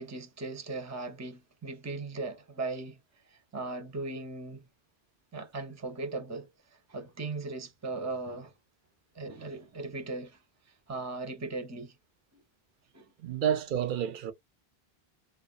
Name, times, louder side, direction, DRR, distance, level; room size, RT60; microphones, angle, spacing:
voice 1, 0.0-3.0 3.3-4.6 5.3-6.5 6.9-8.5 9.1-10.4 10.9-12.0 12.3-12.4 12.9-13.1, right 3 dB, 20° right, 0.6 m, -38 dB
voice 2, 13.2-14.3, right 9 dB, 60° right, 0.6 m, -29 dB
2.4 x 2.4 x 2.3 m
omnidirectional pair, 1.1 m